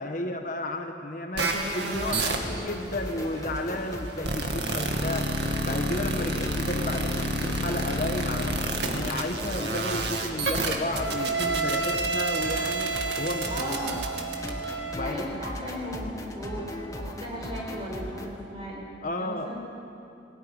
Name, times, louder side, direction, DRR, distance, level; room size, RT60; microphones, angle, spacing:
voice 1, 0.0-5.3 5.6-13.8 14.9-15.4 19.0-19.5, left 1 dB, 45° left, 4 dB, 1.3 m, -33 dB
sound 1, 1.4-14.9, right 2 dB, 65° right, 2.2 m, -30 dB
sound 2, 1.8-18.3, left 1 dB, 20° left, 1.6 m, -38 dB
voice 2, 13.5-14.0 15.0-16.6 16.9-18.8 19.2-19.6, equal, 30° right, -3 dB, 6.5 m, -36 dB
19.0 x 19.0 x 9.7 m, 2.7 s
head